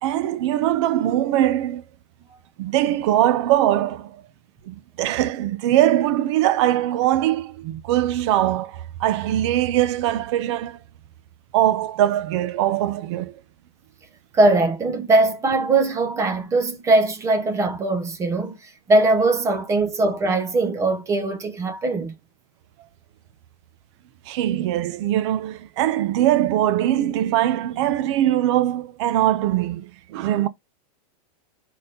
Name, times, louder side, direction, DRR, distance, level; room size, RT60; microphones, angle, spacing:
voice 1, 0.0-1.8 2.6-4.2 4.6-10.8 11.5-13.3 24.3-30.5, right 13 dB, 45° right, 0.7 m, -21 dB
voice 2, 14.3-22.1, right 2 dB, 15° right, 0.9 m, -21 dB
4.2 x 4.2 x 5.2 m
supercardioid pair, 160°, 20 cm